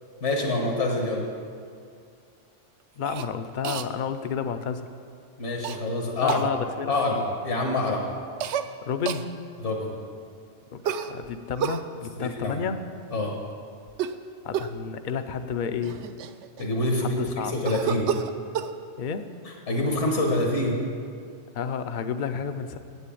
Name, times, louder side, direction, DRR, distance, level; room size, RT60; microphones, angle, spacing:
voice 1, 0.2-1.3 5.4-6.5 6.9-8.1 9.6-9.9 12.2-12.6 13.1-13.3 16.6-17.2 17.5-18.1 19.7-20.8, left 2 dB, 70° left, 0 dB, 1.6 m, -26 dB
voice 2, 3.0-4.9 6.2-7.2 8.8-9.3 10.7-10.8 11.1-12.8 14.4-16.1 17.0-17.5 19.0-19.3 21.5-22.8, left 7 dB, 50° left, 9 dB, 0.6 m, -31 dB
Cough, 3.0-3.3 3.6-3.9 5.6-5.8 6.3-6.5 8.4-8.7 9.1-9.3 10.8-11.8 13.9-14.2 14.5-14.8 15.5-15.6 15.8-16.8 17.6-18.7, right 8 dB, 70° right, 0.8 m, -30 dB
8.4 x 8.2 x 8.4 m, 2.3 s
omnidirectional pair, 1.2 m